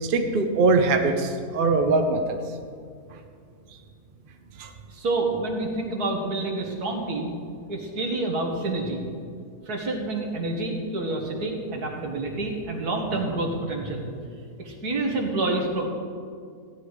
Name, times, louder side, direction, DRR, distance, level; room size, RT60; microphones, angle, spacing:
voice 1, 0.0-2.4 3.1-3.2 4.6-4.7, right 3 dB, 40° right, 5 dB, 0.9 m, -22 dB
voice 2, 4.9-7.3 7.7-9.0 9.7-14.1 14.6-15.9, right 2 dB, 75° right, 1 dB, 2.2 m, -28 dB
15.5 x 10.0 x 4.8 m, 2.2 s
omnidirectional pair, 1.7 m